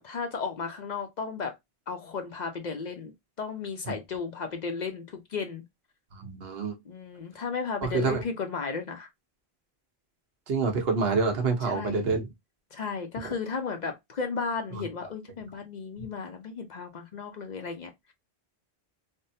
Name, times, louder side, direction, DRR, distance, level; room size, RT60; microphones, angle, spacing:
voice 1, 0.0-1.5 1.9-3.1 3.4-5.6 6.9-9.1 11.7-12.0 12.7-17.9, left 5 dB, 50° left, 0.6 m, -34 dB
voice 2, 6.1-6.7 7.8-8.2 10.5-12.3 13.2-13.3 14.7-14.9, right 4 dB, 75° right, 1.0 m, -27 dB
3.4 x 2.1 x 2.6 m
omnidirectional pair, 1.0 m